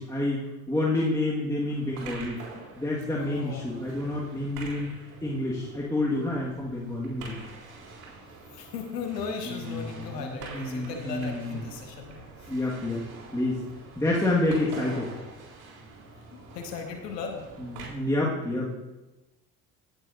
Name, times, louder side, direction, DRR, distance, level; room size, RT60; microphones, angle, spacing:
voice 1, 0.0-2.4 2.8-4.9 5.2-7.4 9.5-11.6 12.5-13.0 13.3-13.6 14.0-15.1 17.6-18.7, left 2 dB, 5° left, -5 dB, 1.8 m, -28 dB
sound 1, 1.7-17.9, right 3 dB, 70° right, 4.0 m, -46 dB
voice 2, 3.1-3.7 7.5-7.6 8.5-12.5 16.3-17.5, left 5 dB, 85° left, 4 dB, 1.4 m, -37 dB
17.5 x 8.0 x 2.7 m, 1.1 s
hypercardioid pair, 60°, 48 cm